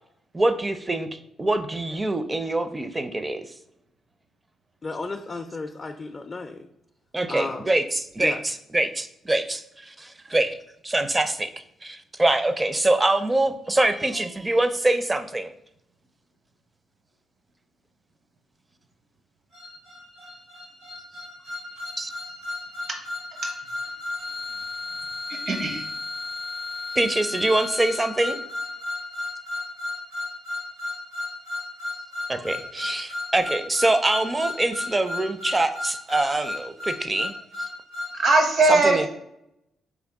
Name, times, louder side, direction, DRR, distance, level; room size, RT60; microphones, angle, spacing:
voice 1, 0.3-1.1 1.4-3.4 7.1-10.6 10.8-11.5 11.8-15.5 22.0-22.1 27.0-28.4 32.3-37.3 38.7-39.1, right 2 dB, 25° right, 10 dB, 0.5 m, -24 dB
voice 2, 4.8-6.7 7.3-7.7 8.2-8.4, left 3 dB, 40° left, 5 dB, 0.4 m, -33 dB
sound 1, 19.5-38.2, left 2 dB, 80° right, 1.4 m, -34 dB
voice 3, 25.3-25.9 38.1-39.1, right 3 dB, 60° right, 4 dB, 1.0 m, -20 dB
3.6 x 3.6 x 3.4 m, 0.77 s
supercardioid pair, 50°, 0 cm